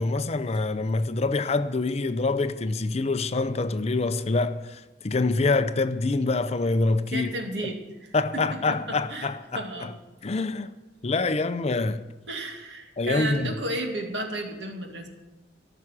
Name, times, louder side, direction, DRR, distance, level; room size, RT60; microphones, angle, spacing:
voice 1, 0.0-7.3 8.1-9.9 10.2-10.7 11.0-12.1 13.0-13.5, left 3 dB, 35° left, 0.5 m, -26 dB
voice 2, 7.1-9.3 9.5-10.0 12.3-15.1, right 1 dB, 70° right, 2.3 m, -33 dB
14.0 x 6.0 x 10.0 m
head